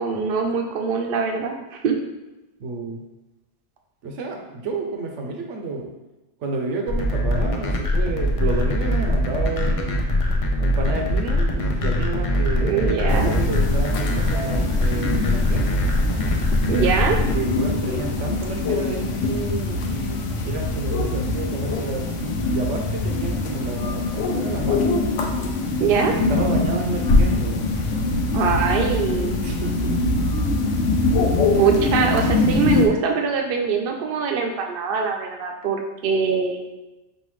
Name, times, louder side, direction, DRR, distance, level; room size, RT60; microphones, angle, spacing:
voice 1, 0.0-2.0 12.6-13.3 16.7-17.2 25.8-26.1 28.3-29.4 31.5-36.7, right 5 dB, 60° right, 3 dB, 0.7 m, -23 dB
voice 2, 2.6-3.0 4.0-5.9 6.4-10.0 10.6-15.7 17.3-25.0 26.0-27.7 29.4-30.0, right 3 dB, 80° right, 2 dB, 1.0 m, -30 dB
sound 1, 6.9-17.3, left 1 dB, 55° left, 0.3 m, -22 dB
sound 2, 13.1-32.9, left 2 dB, 90° left, 0.9 m, -23 dB
5.4 x 2.5 x 3.1 m, 1.1 s
omnidirectional pair, 1.2 m